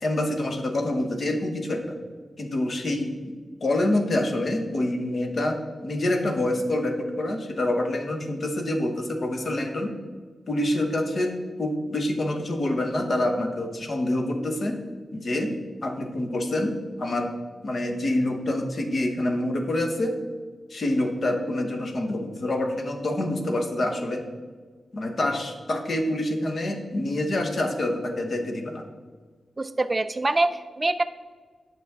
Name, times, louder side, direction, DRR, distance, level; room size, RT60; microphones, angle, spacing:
voice 1, 0.0-2.0 2.4-3.3 3.6-9.9 10.5-11.3 11.6-14.8 15.1-15.5 15.8-17.3 17.6-20.1 20.7-24.2 24.9-28.8, left 1 dB, 45° left, 4 dB, 0.9 m, -26 dB
voice 2, 29.6-31.0, right 2 dB, 25° right, 11 dB, 0.4 m, -24 dB
9.2 x 6.8 x 3.6 m, 1.5 s
wide cardioid pair, 150°, 0 cm